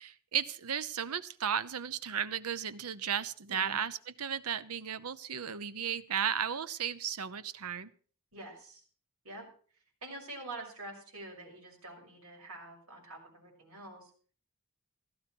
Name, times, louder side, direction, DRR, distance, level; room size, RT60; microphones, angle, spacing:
voice 1, 0.0-7.9, right 8 dB, 90° right, 15 dB, 0.8 m, -35 dB
voice 2, 3.5-3.8 8.3-8.8 9.2-9.5 10.0-14.1, right 2 dB, 75° right, 0 dB, 6.2 m, -46 dB
16.5 x 13.5 x 4.6 m, 0.43 s
head